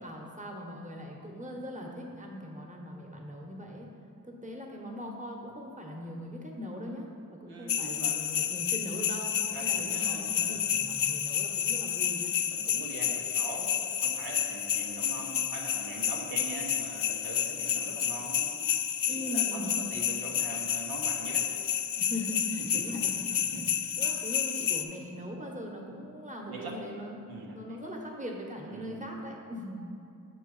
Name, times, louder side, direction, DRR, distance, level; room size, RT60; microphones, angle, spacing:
voice 1, 0.0-3.9 4.2-7.1 7.3-9.3 9.6-12.3 19.0-19.7 22.0-29.8, equal, 20° right, 0 dB, 1.2 m, -40 dB
voice 2, 7.5-8.2 9.5-10.6 12.5-18.5 19.1-21.5 22.7-23.1 23.5-23.6 26.5-26.8 27.3-27.5 28.7-29.0, right 2 dB, 90° right, -2 dB, 0.9 m, -42 dB
sound 1, 7.7-24.8, left 9 dB, 65° left, 0.5 m, -30 dB
6.6 x 3.1 x 5.5 m, 2.5 s
cardioid pair, 40°, 36 cm